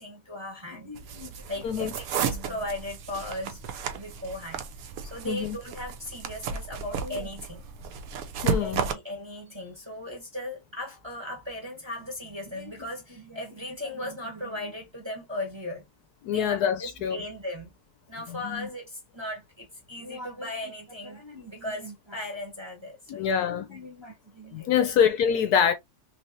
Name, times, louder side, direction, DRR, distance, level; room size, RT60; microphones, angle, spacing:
voice 1, 0.0-3.6 3.9-4.7 5.0-7.6 8.6-15.9 16.3-17.7 18.1-24.7, left 1 dB, 20° right, 0.9 m, -37 dB
sound 1, 0.9-8.9, right 6 dB, 65° right, 1.0 m, -33 dB
voice 2, 5.2-5.6 8.4-8.8 16.2-17.2 18.3-18.7 23.1-23.8 24.5-25.7, left 8 dB, 70° left, 1.0 m, -25 dB
3.3 x 3.2 x 2.6 m
omnidirectional pair, 1.9 m